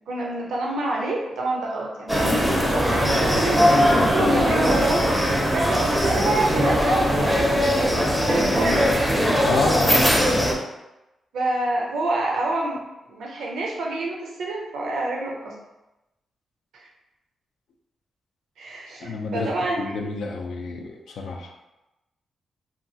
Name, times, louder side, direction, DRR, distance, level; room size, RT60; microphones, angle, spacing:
voice 1, 0.1-3.9 4.2-5.2 5.5-10.0 11.3-15.6 16.7-16.9 18.6-19.8, right 2 dB, 85° right, -1 dB, 0.5 m, -28 dB
sound 1, 2.1-10.5, equal, ahead, 0.5 m, -20 dB
voice 2, 9.4-10.3 19.0-19.5 19.8-21.7, left 3 dB, 85° left, 1 dB, 0.4 m, -29 dB
2.8 x 2.3 x 2.7 m, 0.96 s
cardioid pair, 105°, 0 cm